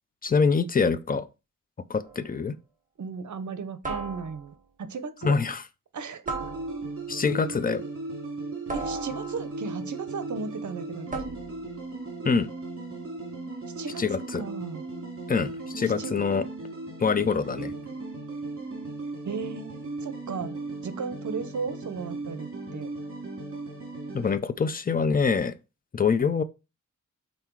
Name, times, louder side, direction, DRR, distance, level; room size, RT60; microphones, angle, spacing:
voice 1, 0.2-1.3 1.9-2.6 5.2-5.6 7.1-7.8 12.2-12.5 14.0-14.4 15.3-16.4 17.0-17.7 24.1-25.6 25.9-26.4, left 5 dB, 30° left, 0.5 m, -25 dB
sound 1, 2.0-2.4 3.8-4.6 6.3-7.1 8.7-9.6 11.1-11.7, right 3 dB, 25° right, 1.7 m, -36 dB
voice 2, 3.0-5.4 5.9-6.2 8.7-11.4 13.8-14.0 14.3-14.8 15.8-16.1 19.2-19.7 20.0-20.6 20.8-22.9, right 5 dB, 65° right, 0.8 m, -35 dB
sound 2, 6.3-24.4, right 2 dB, 45° right, 2.4 m, -37 dB
5.7 x 3.9 x 4.6 m
wide cardioid pair, 135°, 32 cm